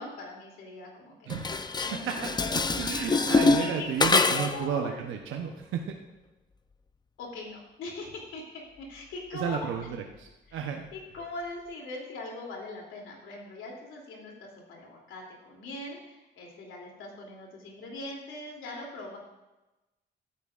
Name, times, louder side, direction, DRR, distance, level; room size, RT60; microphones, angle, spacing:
voice 1, 0.0-1.4 1.8-2.5 2.9-3.2 3.6-5.0 7.2-9.7 10.5-19.2, left 2 dB, 80° left, -1 dB, 2.9 m, -41 dB
Dishes pots and pans, 1.3-4.7, left 4 dB, 20° left, 0.6 m, -25 dB
voice 2, 1.3-2.1 2.5-6.0 9.3-10.8, right 8 dB, 85° right, 2 dB, 0.9 m, -33 dB
14.0 x 12.0 x 2.5 m, 1.0 s
cardioid pair, 90°, 20 cm